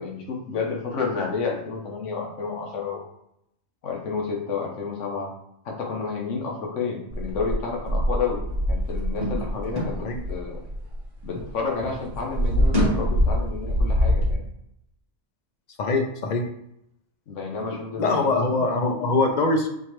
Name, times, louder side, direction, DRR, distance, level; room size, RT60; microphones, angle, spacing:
voice 1, 0.0-3.0 3.8-5.3 5.6-8.4 8.7-10.6 11.2-14.4 17.3-18.6, left 5 dB, 85° left, 1 dB, 1.2 m, -30 dB
sound 1, 7.1-11.5 11.8-14.3, equal, 35° right, 1.2 m, -24 dB
voice 2, 15.8-16.4 18.0-19.7, left 3 dB, 55° left, 4 dB, 0.5 m, -23 dB
4.3 x 3.1 x 3.0 m, 0.78 s
omnidirectional pair, 1.2 m